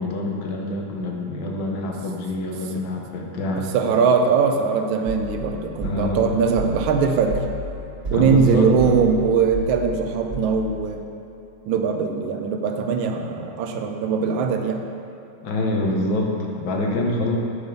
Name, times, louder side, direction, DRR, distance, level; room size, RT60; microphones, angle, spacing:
voice 1, 0.0-3.7 5.8-6.2 8.1-9.0 13.4-13.5 15.4-17.4, left 2 dB, 75° left, 0 dB, 1.6 m, -26 dB
voice 2, 3.7-7.4 8.1-11.0 11.6-14.8, right 6 dB, 80° right, 4 dB, 1.3 m, -21 dB
sound 1, 5.1-10.9, equal, 35° right, 1.5 m, -32 dB
7.9 x 3.5 x 5.2 m, 2.7 s
omnidirectional pair, 2.2 m